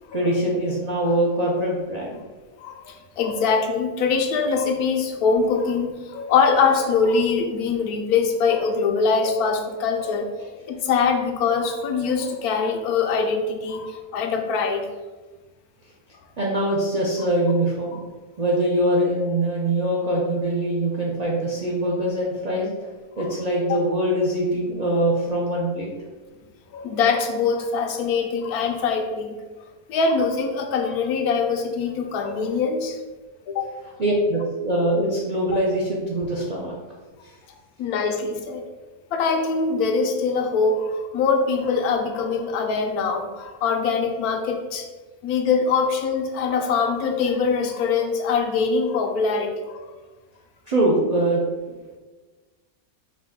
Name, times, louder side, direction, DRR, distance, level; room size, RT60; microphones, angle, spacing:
voice 1, 0.1-2.2 16.4-18.0 18.4-22.9 23.2-25.9 34.0-36.7 37.2-37.3 50.7-51.5, right 1 dB, 75° right, -3 dB, 0.3 m, -23 dB
voice 2, 2.6-10.3 10.7-14.9 23.2-23.3 26.7-29.4 29.9-33.0 33.5-33.7 37.8-38.6 39.1-44.9 45.2-49.9, left 5 dB, 90° left, 4 dB, 1.1 m, -23 dB
4.8 x 2.2 x 3.5 m, 1.3 s
omnidirectional pair, 1.5 m